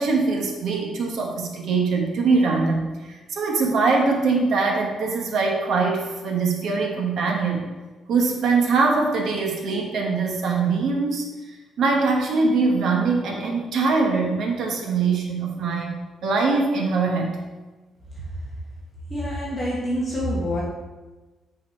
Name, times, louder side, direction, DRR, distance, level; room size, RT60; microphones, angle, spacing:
voice 1, 0.0-7.6 8.1-11.2 11.8-17.4, right 4 dB, 60° right, 0 dB, 1.2 m, -22 dB
voice 2, 19.1-20.6, equal, 15° left, -6 dB, 1.2 m, -26 dB
8.7 x 4.1 x 4.5 m, 1.2 s
cardioid pair, 175°, 0 cm